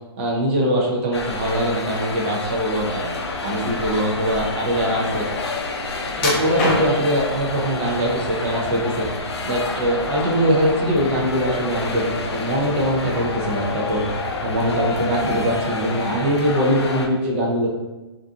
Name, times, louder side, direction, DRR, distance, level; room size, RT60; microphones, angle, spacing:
voice 1, 0.2-3.1 3.4-5.3 6.2-9.1 9.4-14.0 14.4-17.7, equal, 25° right, -3 dB, 0.4 m, -22 dB
sound 1, 1.1-17.1, left 3 dB, 90° left, 0.4 m, -29 dB
sound 2, 2.8-15.8, equal, 65° right, 1.2 m, -35 dB
sound 3, 6.2-7.2 7.9-8.5 8.9-9.9 10.2-10.4 10.9-11.0, left 1 dB, 25° left, 0.5 m, -25 dB
2.5 x 2.3 x 2.6 m, 1.1 s
hypercardioid pair, 165°, 14 cm